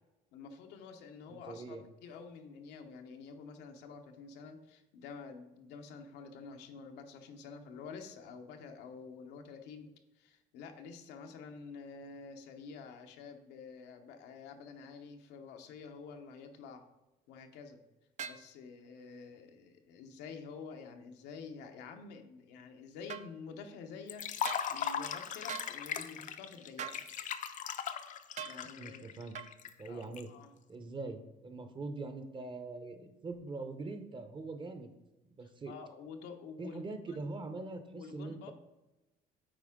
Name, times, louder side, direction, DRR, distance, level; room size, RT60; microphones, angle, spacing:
voice 1, 0.3-16.8 17.3-17.8 18.2-27.0 28.4-29.1 29.8-30.5 35.4-37.2 37.9-38.5, left 5 dB, 90° left, 5 dB, 0.9 m, -49 dB
voice 2, 1.3-1.8 28.6-29.3 29.8-30.3 30.7-34.9 35.3-35.7 36.6-38.5, right 3 dB, 30° right, 8 dB, 0.8 m, -43 dB
sound 1, 18.2-18.5 23.1-23.3 24.4-24.7 25.5-25.7 26.8-27.0 28.4-28.6 29.3-29.5, right 8 dB, 45° right, 0.4 m, -41 dB
Liquid, 24.1-30.2, left 8 dB, 50° left, 0.5 m, -38 dB
8.9 x 4.4 x 3.6 m, 1.0 s
cardioid pair, 110°, 17 cm